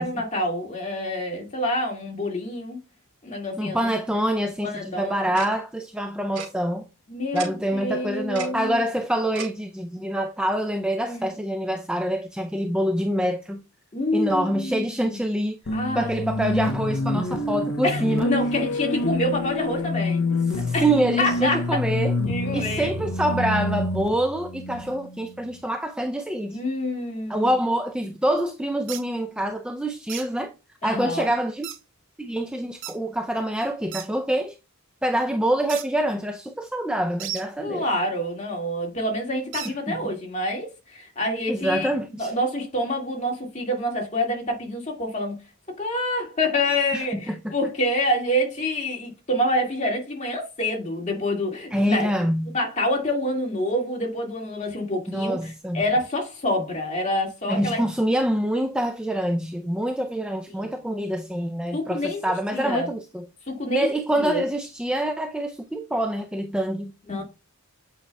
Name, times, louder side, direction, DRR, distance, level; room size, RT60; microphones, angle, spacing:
voice 1, 0.0-2.8 3.2-3.8 4.6-5.1 7.1-8.8 11.0-11.3 13.9-15.2 15.7-16.5 17.8-20.2 20.7-20.9 21.2-21.8 22.3-22.9 26.5-27.5 30.8-31.3 37.6-45.4 45.8-52.1 52.5-57.8 60.6-60.7 61.7-62.9 63.5-64.4 67.1-67.2, left 1 dB, 30° left, 2.0 m, -27 dB
voice 2, 3.6-6.8 7.3-13.6 14.1-15.6 15.9-18.3 20.5-22.2 22.5-26.6 27.3-30.5 30.8-31.7 32.2-34.6 35.0-37.9 39.9-40.0 41.5-42.3 46.9-47.5 51.7-52.6 55.1-55.8 57.5-63.3 63.7-66.9, right 1 dB, 5° right, 0.4 m, -26 dB
Tick-tock, 5.3-5.5 6.3-6.5 7.3-7.5 8.3-8.5 9.3-9.5, right 6 dB, 80° right, 2.6 m, -34 dB
sound 1, 15.7-25.5, left 2 dB, 55° left, 0.6 m, -27 dB
sound 2, 28.9-29.0 30.1-30.3 31.6-31.8 32.8-33.0 33.9-34.1 35.7-35.9 37.2-37.5 39.5-39.7, right 10 dB, 55° right, 0.6 m, -34 dB
8.4 x 5.4 x 2.2 m
head